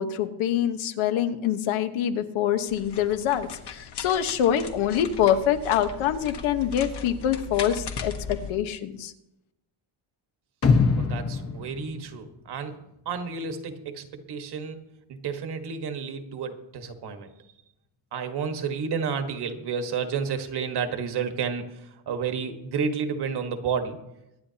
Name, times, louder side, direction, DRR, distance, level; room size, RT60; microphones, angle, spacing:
voice 1, 0.0-9.1, left 10 dB, 70° left, 9 dB, 1.3 m, -25 dB
sound 1, 2.7-8.5, left 5 dB, 55° left, 1.5 m, -38 dB
sound 2, 10.6-12.8 13.1-13.2, left 4 dB, 30° left, 1.1 m, -24 dB
voice 2, 11.0-12.8 13.0-14.8 15.1-17.3 18.1-24.0, right 6 dB, 50° right, 6 dB, 1.5 m, -31 dB
24.0 x 9.8 x 2.9 m, 0.88 s
cardioid pair, 135°, 50 cm